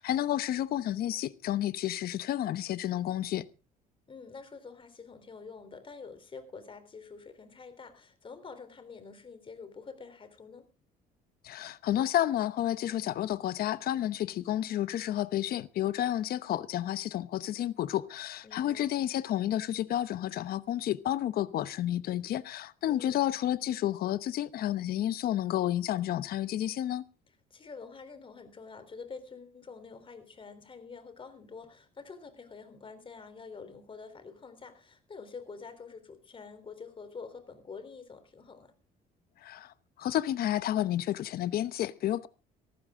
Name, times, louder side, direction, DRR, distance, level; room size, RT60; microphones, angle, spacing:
voice 1, 0.0-3.5 11.4-27.0 39.4-42.3, left 12 dB, 65° left, 0.9 m, -31 dB
voice 2, 4.1-10.7 18.4-19.0 22.9-23.3 27.5-38.7, left 5 dB, 30° left, 3.6 m, -47 dB
18.0 x 14.5 x 3.7 m
cardioid pair, 110°, 17 cm